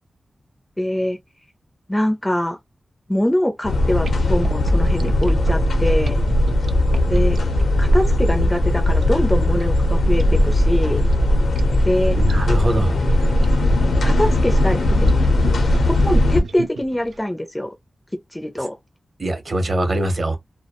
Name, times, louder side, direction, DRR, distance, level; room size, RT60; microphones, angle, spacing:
voice 1, 0.8-1.2 1.9-2.6 3.1-6.2 7.1-7.4 7.8-11.0 11.8-12.2 14.0-15.2 15.9-17.7 18.3-18.7, left 1 dB, 10° left, 0.4 m, -23 dB
sound 1, 3.6-16.4, left 1 dB, 85° left, 0.6 m, -18 dB
sound 2, 4.0-17.1, right 1 dB, 80° right, 0.3 m, -29 dB
voice 2, 12.1-13.0 19.2-20.4, right 1 dB, 40° right, 0.7 m, -22 dB
2.3 x 2.0 x 2.8 m
wide cardioid pair, 140°, 0 cm